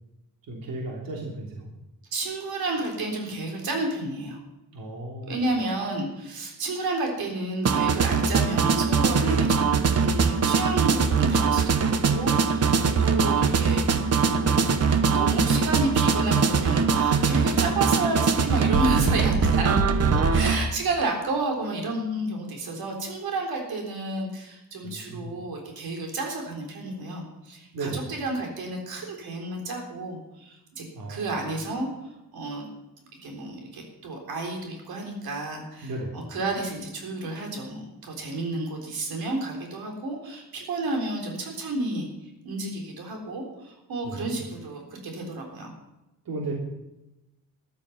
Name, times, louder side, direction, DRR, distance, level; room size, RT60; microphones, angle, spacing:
voice 1, 0.5-1.7 4.7-5.4 12.6-12.9 18.9-19.3 19.8-20.4 24.8-25.4 27.7-28.1 30.9-31.4 35.8-36.2 44.0-44.3 46.2-46.5, right 2 dB, 70° right, -1 dB, 3.3 m, -34 dB
voice 2, 2.1-4.4 5.3-11.8 12.1-13.8 14.2-14.7 15.1-19.8 20.3-31.9 32.3-32.6 33.2-42.1 42.4-45.7, right 2 dB, 85° right, 2 dB, 3.9 m, -31 dB
sound 1, 7.6-20.6, right 5 dB, 45° right, 1.1 m, -22 dB
14.0 x 12.0 x 5.8 m, 0.95 s
wide cardioid pair, 175°, 36 cm